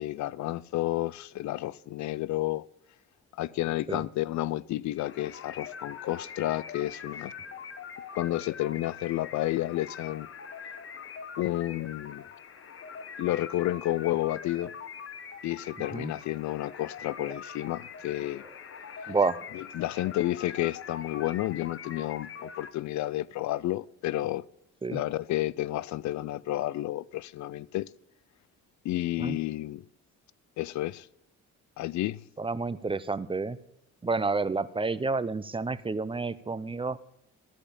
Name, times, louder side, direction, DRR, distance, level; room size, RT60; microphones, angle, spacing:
voice 1, 0.0-2.6 3.4-7.3 8.1-10.3 11.4-12.2 13.2-14.7 15.4-18.4 19.0-19.1 19.6-24.4 24.9-27.9 28.8-29.8 30.6-31.1 31.8-32.2, left 15 dB, 70° left, 0.4 m, -31 dB
sound 1, 5.0-22.7, left 6 dB, 45° left, 1.1 m, -43 dB
voice 2, 15.8-16.1 17.2-17.3 19.1-19.4 24.8-25.0 29.2-29.4 32.4-33.6 34.0-37.0, right 3 dB, 20° right, 0.5 m, -30 dB
13.0 x 5.1 x 8.7 m
cardioid pair, 90°, 30 cm